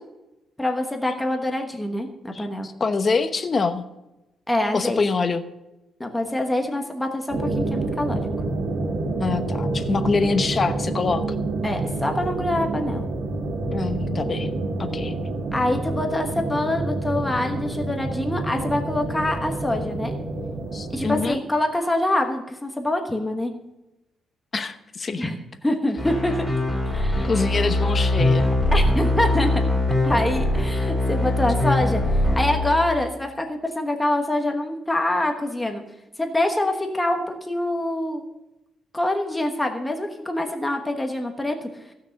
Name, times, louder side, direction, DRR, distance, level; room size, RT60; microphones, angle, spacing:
voice 1, 0.6-2.7 4.5-5.0 6.0-8.2 11.6-13.0 15.5-20.2 20.9-23.5 25.2-25.4 25.6-26.3 26.9-27.3 28.7-29.5 30.0-32.0 32.4-35.8 36.2-38.3 38.9-41.7, left 1 dB, 10° left, 3 dB, 1.2 m, -25 dB
voice 2, 2.3-3.9 4.7-5.4 9.2-11.2 13.7-14.5 14.8-15.1 20.7-21.4 24.5-25.2 27.2-28.5, left 4 dB, 30° left, 8 dB, 0.9 m, -25 dB
sound 1, 7.3-21.2, right 2 dB, 65° right, 1.5 m, -28 dB
sound 2, 26.0-32.9, left 1 dB, 5° right, 3.8 m, -22 dB
16.0 x 6.2 x 6.5 m, 0.94 s
cardioid pair, 140°, 0 cm